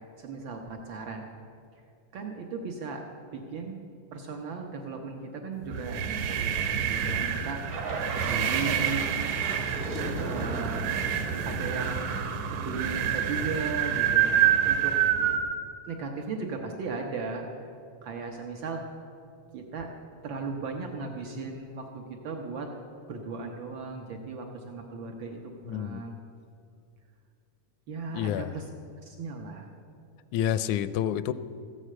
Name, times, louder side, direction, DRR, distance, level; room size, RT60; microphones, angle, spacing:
voice 1, 0.2-1.3 2.1-3.0 3.3-3.7 4.1-9.0 10.2-10.8 11.4-12.0 12.5-14.9 15.9-17.5 18.0-18.8 19.5-19.9 20.2-22.7 23.1-26.1 27.9-28.6 29.0-29.7, right 4 dB, 90° right, 2 dB, 1.0 m, -37 dB
sound 1, 5.7-15.5, right 9 dB, 70° right, 2.1 m, -27 dB
sound 2, 7.6-13.0, right 2 dB, 55° right, 0.8 m, -37 dB
voice 2, 25.7-26.0 28.1-28.5 30.3-31.3, left 10 dB, 80° left, 14 dB, 1.8 m, -28 dB
14.5 x 9.9 x 7.6 m, 2.5 s
omnidirectional pair, 3.7 m